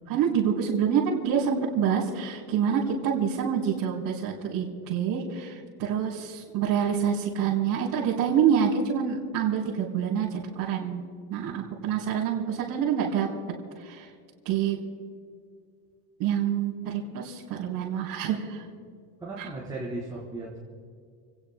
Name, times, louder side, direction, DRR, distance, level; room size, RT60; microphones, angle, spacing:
voice 1, 0.1-11.0 11.3-13.3 13.8-14.1 14.4-14.8 16.2-18.6 19.4-19.5, right 8 dB, 50° right, -6 dB, 3.9 m, -27 dB
voice 2, 11.4-12.0 19.2-20.6, right 2 dB, 10° right, -8 dB, 3.8 m, -37 dB
30.0 x 19.0 x 2.2 m, 2.1 s
cardioid pair, 165°, 43 cm